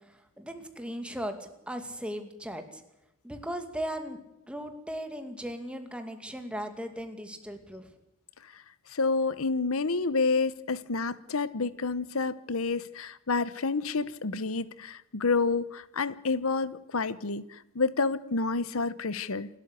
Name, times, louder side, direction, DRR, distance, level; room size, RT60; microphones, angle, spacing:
voice 1, 0.1-2.8 3.2-4.2 4.5-7.9 14.0-14.1, equal, 5° right, 6 dB, 2.4 m, -37 dB
voice 2, 8.9-19.5, left 4 dB, 80° left, 17 dB, 0.9 m, -29 dB
28.5 x 13.0 x 8.3 m, 0.91 s
head